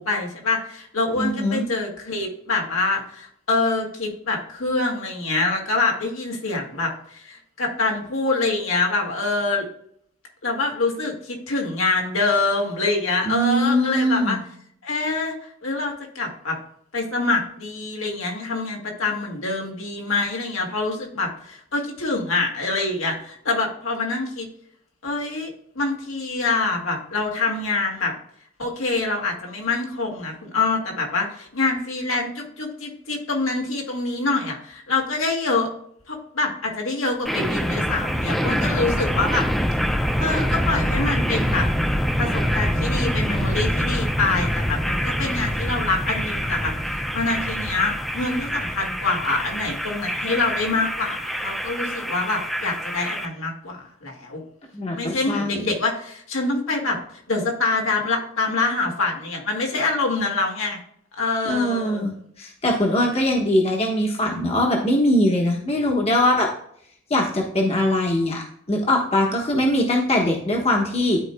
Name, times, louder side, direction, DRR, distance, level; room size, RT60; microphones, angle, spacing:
voice 1, 0.0-9.7 10.4-14.4 14.8-16.6 16.9-24.5 25.0-28.1 28.6-35.7 36.1-39.5 40.2-41.7 42.2-54.4 54.9-57.0 57.3-60.8 61.2-62.1, left 3 dB, 80° left, 0 dB, 2.1 m, -25 dB
voice 2, 1.1-1.7 13.2-14.4 54.7-55.7 61.4-66.5 67.1-71.2, left 1 dB, 30° left, 0 dB, 1.2 m, -22 dB
sound 1, 37.3-53.3, equal, ahead, 0.5 m, -25 dB
12.5 x 4.6 x 2.2 m, 0.67 s
head